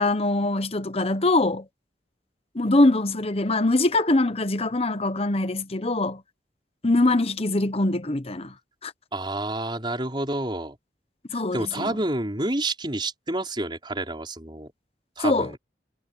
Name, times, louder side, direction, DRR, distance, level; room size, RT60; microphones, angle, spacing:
voice 1, 0.0-1.7 2.5-6.2 6.8-8.5 8.8-8.9 11.3-12.0 15.2-15.5, left 2 dB, 35° left, 1.1 m, -23 dB
voice 2, 9.1-10.8 11.3-14.7 15.2-15.6, right 1 dB, 25° right, 5.0 m, -29 dB
head